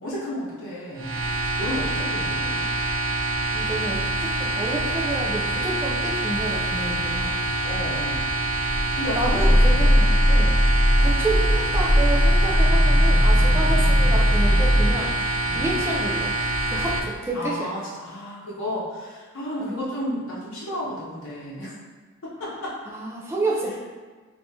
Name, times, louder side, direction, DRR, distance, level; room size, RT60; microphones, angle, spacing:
voice 1, 0.0-1.1 1.6-2.6 7.6-8.2 8.9-10.0 15.4-15.8 17.3-21.7 22.2-22.8, equal, 60° left, -8 dB, 0.9 m, -32 dB
sound 1, 1.0-17.0, right 2 dB, 80° right, 0.5 m, -26 dB
voice 2, 3.5-7.3 9.2-10.6 11.0-15.1 15.5-16.3 16.7-17.7 19.6-19.8 22.9-23.8, right 2 dB, 10° right, -4 dB, 0.5 m, -29 dB
Growling, 8.7-15.0, equal, 35° left, 0.6 m, -18 dB
3.5 x 2.7 x 2.8 m, 1.4 s
head